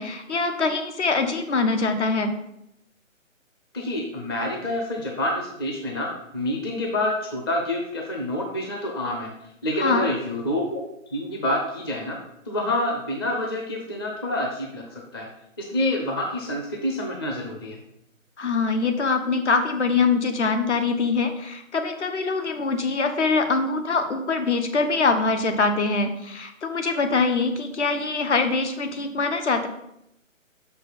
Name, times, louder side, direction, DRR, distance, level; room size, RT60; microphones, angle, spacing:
voice 1, 0.0-2.3 9.8-10.1 18.4-29.7, left 4 dB, 55° left, 7 dB, 1.2 m, -23 dB
voice 2, 3.7-9.3 9.6-10.8 11.1-12.2 12.5-15.3 15.6-17.8, left 1 dB, 20° left, 0 dB, 0.7 m, -27 dB
6.4 x 5.5 x 5.8 m, 0.79 s
hypercardioid pair, 155°, 40 cm